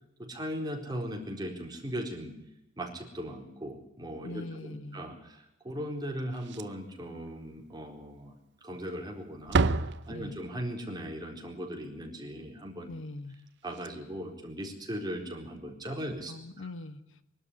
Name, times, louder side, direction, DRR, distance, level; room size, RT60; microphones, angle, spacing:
voice 1, 0.2-2.3 2.8-8.4 8.6-12.9 13.6-16.7, equal, 20° right, 1 dB, 4.3 m, -38 dB
voice 2, 4.2-5.1 10.1-10.3 12.9-13.4 16.3-17.2, left 2 dB, 65° left, 12 dB, 1.4 m, -42 dB
Slam, 6.3-7.0 7.3-7.4 7.8-7.9 8.7-9.1 9.4-10.7 13.3-13.4 13.7-13.9 15.4-15.6, right 3 dB, 60° right, 0.8 m, -31 dB
22.0 x 12.5 x 9.7 m, 0.86 s
head